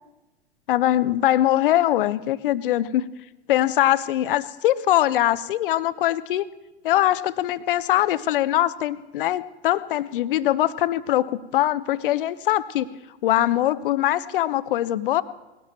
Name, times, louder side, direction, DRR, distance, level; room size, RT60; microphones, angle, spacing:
voice 1, 0.7-3.0 3.5-6.5 6.8-12.9 13.2-15.2, left 13 dB, 55° left, 16 dB, 0.7 m, -22 dB
19.5 x 17.5 x 3.1 m, 1.0 s
figure-of-eight pair, 95°, 32 cm